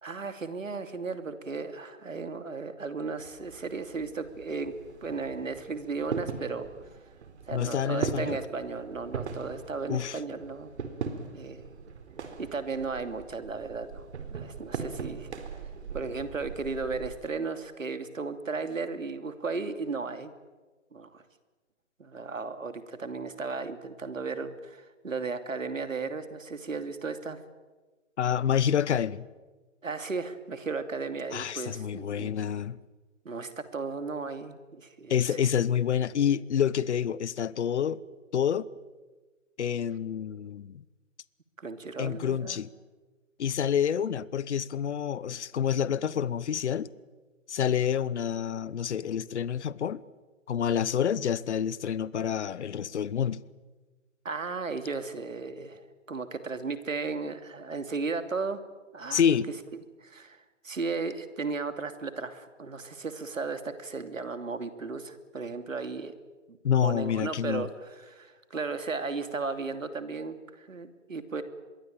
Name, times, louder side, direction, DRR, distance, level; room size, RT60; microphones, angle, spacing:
voice 1, 0.0-4.7 5.0-6.7 7.5-10.7 11.3-11.7 12.4-15.3 15.9-20.3 20.9-21.2 22.0-27.4 29.8-32.4 33.2-35.5 41.6-42.6 54.2-58.6 58.9-59.2 60.0-60.4 60.6-66.1 66.5-71.4, right 4 dB, 85° right, 2.9 m, -35 dB
sound 1, 3.2-17.1, right 5 dB, 60° right, 4.1 m, -40 dB
voice 2, 7.5-8.4 9.9-10.2 28.2-29.2 31.3-32.8 35.1-38.0 38.3-38.7 39.6-40.8 42.0-42.7 43.4-46.9 47.5-50.0 50.5-53.4 59.1-59.5 66.6-67.7, left 8 dB, 60° left, 1.0 m, -28 dB
27.0 x 22.5 x 9.0 m
figure-of-eight pair, 140°, 38 cm